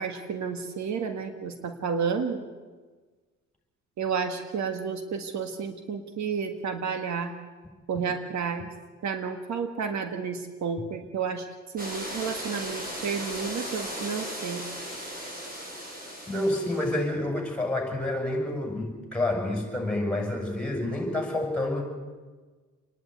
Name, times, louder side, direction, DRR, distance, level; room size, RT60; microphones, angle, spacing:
voice 1, 0.0-2.5 4.0-7.3 7.9-8.7 9.0-11.5 11.7-14.6, right 6 dB, 70° right, 7 dB, 1.7 m, -31 dB
sound 1, 11.8-17.0, equal, 30° right, 6.2 m, -37 dB
voice 2, 16.3-21.8, left 1 dB, 5° left, 2 dB, 7.0 m, -28 dB
27.5 x 11.0 x 9.4 m, 1.4 s
cardioid pair, 90°, 30 cm